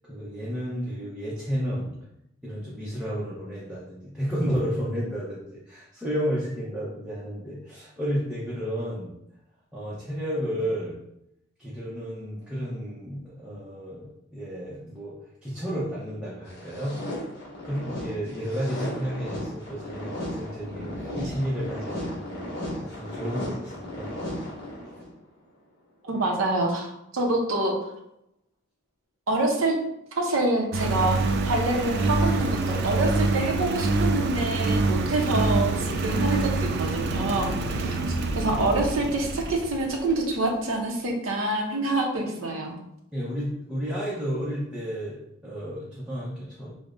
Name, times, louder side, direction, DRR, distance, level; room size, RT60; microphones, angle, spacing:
voice 1, 0.0-1.9 2.4-9.1 9.7-11.0 11.6-15.2 15.4-17.0 17.6-24.1 43.1-46.7, equal, 5° right, -8 dB, 0.6 m, -32 dB
sound 1, 16.5-25.1, left 1 dB, 60° left, 1.1 m, -35 dB
voice 2, 26.0-27.9 29.3-29.8 30.2-31.2 31.4-37.5 37.8-38.0 38.4-42.8, right 2 dB, 90° right, 1 dB, 0.7 m, -26 dB
Engine, 30.7-40.2, right 2 dB, 55° right, 0.3 m, -26 dB
5.0 x 2.0 x 2.4 m, 0.82 s
head